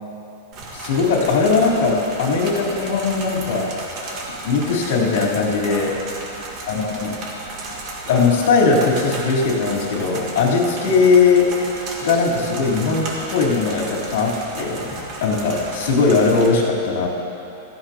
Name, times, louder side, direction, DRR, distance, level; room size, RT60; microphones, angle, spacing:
sound 1, 0.5-16.5, right 2 dB, 35° right, 1.7 m, -33 dB
voice 1, 0.7-3.7 4.4-5.9 6.7-7.1 8.0-11.6 12.0-17.1, left 4 dB, 65° left, -5 dB, 3.5 m, -19 dB
16.0 x 15.5 x 2.9 m, 3.0 s
supercardioid pair, 165°, 0 cm